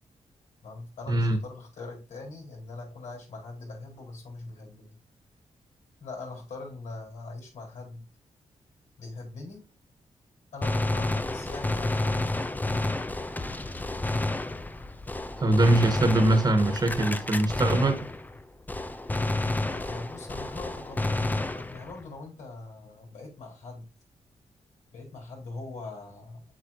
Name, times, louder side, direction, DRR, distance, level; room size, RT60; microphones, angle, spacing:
voice 1, 0.6-4.9 6.0-8.0 9.0-9.6 10.5-13.0 15.8-16.2 19.7-23.8 24.9-26.4, left 3 dB, 85° left, 4.4 m, -42 dB
Gunshot gunfire, 10.6-18.4 18.7-22.0, left 2 dB, 15° left, 0.5 m, -30 dB
voice 2, 15.4-18.0, right 1 dB, 35° right, 1.5 m, -22 dB
7.8 x 6.6 x 2.8 m
wide cardioid pair, 105°, 12 cm